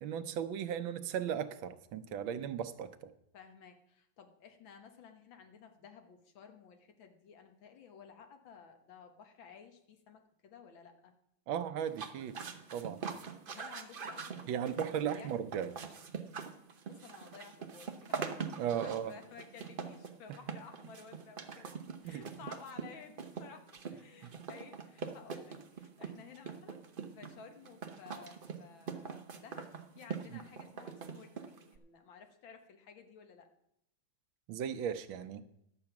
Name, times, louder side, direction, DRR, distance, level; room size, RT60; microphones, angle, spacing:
voice 1, 0.0-3.1 11.5-12.4 12.7-13.0 14.5-15.7 18.6-19.1 22.0-22.2 24.2-24.3 34.5-35.4, right 8 dB, 80° right, 11 dB, 1.5 m, -36 dB
voice 2, 3.3-11.1 13.5-15.3 16.9-18.2 18.6-21.8 22.0-26.9 27.1-29.7 30.0-33.5, left 6 dB, 75° left, 6 dB, 1.9 m, -54 dB
sound 1, 11.9-31.8, right 6 dB, 60° right, 0.5 m, -43 dB
11.5 x 7.9 x 5.8 m, 0.78 s
omnidirectional pair, 2.2 m